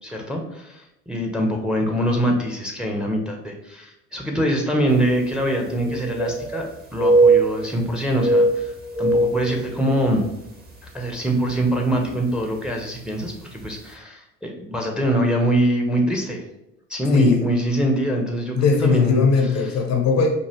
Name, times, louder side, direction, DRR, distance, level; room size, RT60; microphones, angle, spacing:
voice 1, 0.0-8.7 9.0-10.2 10.9-16.4 16.9-19.2, right 1 dB, ahead, 2 dB, 0.8 m, -23 dB
sound 1, 5.0-5.1 5.4-6.7 6.9-7.8 8.1-10.3 10.7-10.8 11.5-11.8 12.8-12.9 13.3-13.4, right 2 dB, 25° right, 1.1 m, -20 dB
voice 2, 17.0-17.4 18.5-20.3, left 4 dB, 40° left, 4 dB, 0.8 m, -19 dB
5.4 x 2.4 x 2.9 m, 0.88 s
hypercardioid pair, 65°, 40 cm